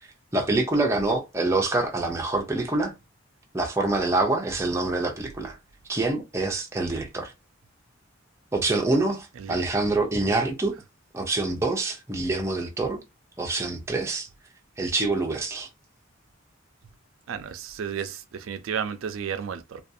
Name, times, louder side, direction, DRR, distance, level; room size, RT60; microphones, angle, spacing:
voice 1, 0.3-2.9 3.5-5.6 5.9-7.3 8.5-10.7 11.1-13.0 13.4-14.3 14.8-15.7, right 2 dB, 15° right, 0.5 m, -26 dB
voice 2, 17.3-18.2 18.5-19.8, right 7 dB, 85° right, 0.4 m, -32 dB
2.5 x 2.3 x 2.6 m
head